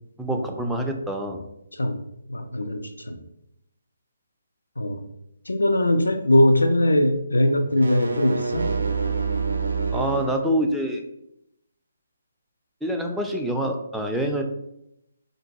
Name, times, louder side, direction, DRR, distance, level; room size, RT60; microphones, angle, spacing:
voice 1, 0.2-1.4 9.9-11.0 12.8-14.4, equal, ahead, 1 dB, 0.3 m, -26 dB
voice 2, 2.3-3.2 4.8-5.0 5.5-8.7, left 1 dB, 85° left, 7 dB, 0.4 m, -21 dB
sound 1, 7.6-10.4, right 4 dB, 80° right, 0.4 m, -27 dB
2.6 x 2.2 x 4.0 m, 0.80 s
figure-of-eight pair, 145°, 0 cm